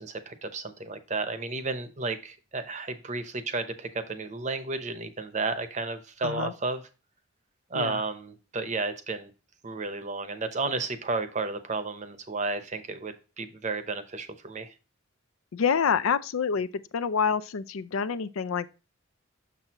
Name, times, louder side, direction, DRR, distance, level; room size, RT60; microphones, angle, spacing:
voice 1, 0.0-6.8 7.7-9.3 9.6-14.7, right 3 dB, 35° right, 0.8 m, -32 dB
voice 2, 6.2-6.5 7.7-8.0 15.5-16.7 16.9-18.7, left 6 dB, 80° left, 0.5 m, -27 dB
6.7 x 6.1 x 2.9 m
head